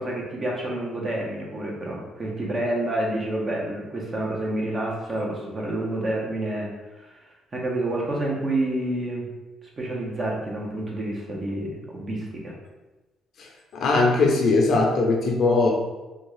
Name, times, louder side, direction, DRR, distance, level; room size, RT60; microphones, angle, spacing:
voice 1, 0.0-6.7 7.0-7.1 7.5-9.3 9.8-12.5, right 1 dB, 35° right, -2 dB, 0.9 m, -28 dB
voice 2, 13.4-15.7, left 3 dB, 65° left, 0 dB, 0.5 m, -20 dB
3.4 x 2.4 x 3.2 m, 1.1 s
cardioid pair, 90°, 0 cm